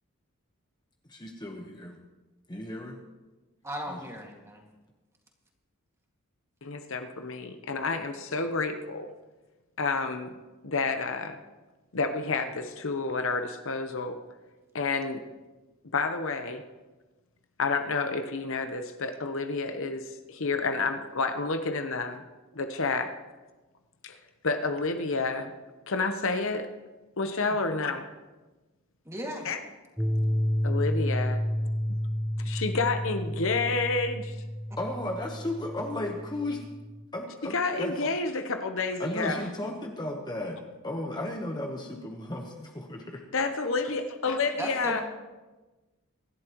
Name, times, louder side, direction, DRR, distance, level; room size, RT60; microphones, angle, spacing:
voice 1, 1.1-2.0 2.5-3.0 3.9-4.0 34.8-36.6 37.1-37.9 39.0-43.2, left 1 dB, 20° left, 1 dB, 1.2 m, -35 dB
voice 2, 3.6-4.6 27.5-27.6 29.1-29.5 44.6-45.0, right 1 dB, 15° right, 0 dB, 2.2 m, -36 dB
voice 3, 6.6-9.1 9.8-10.3 10.6-11.4 11.9-14.2 14.7-15.2 15.9-16.6 17.6-22.2 22.5-23.1 24.0-24.2 24.4-25.5 25.9-26.7 27.2-28.1 29.4-29.6 30.6-31.4 32.4-34.4 37.4-39.5 43.3-45.0, left 3 dB, 65° left, 7 dB, 1.0 m, -29 dB
sound 1, 30.0-37.0, equal, ahead, 0.8 m, -30 dB
24.5 x 11.5 x 3.1 m, 1.2 s
head